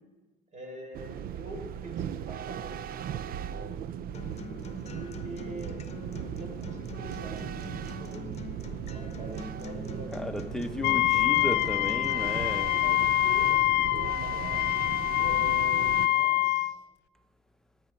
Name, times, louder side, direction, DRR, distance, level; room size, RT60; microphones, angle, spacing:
voice 1, 0.5-4.0 4.9-5.9 6.4-10.4 11.1-11.4 12.2-14.6 15.2-16.8, right 2 dB, 45° right, 2 dB, 3.9 m, -45 dB
sound 1, 0.9-16.1, right 9 dB, 60° right, 0.5 m, -38 dB
Acoustic guitar, 4.1-12.1, left 4 dB, 40° left, 0.9 m, -44 dB
voice 2, 10.1-12.7, left 1 dB, 5° left, 6 dB, 0.9 m, -34 dB
Wind instrument woodwind instrument, 10.8-16.7, left 16 dB, 80° left, 0.4 m, -25 dB
16.5 x 8.8 x 4.6 m, 1.2 s
cardioid pair, 110°, 17 cm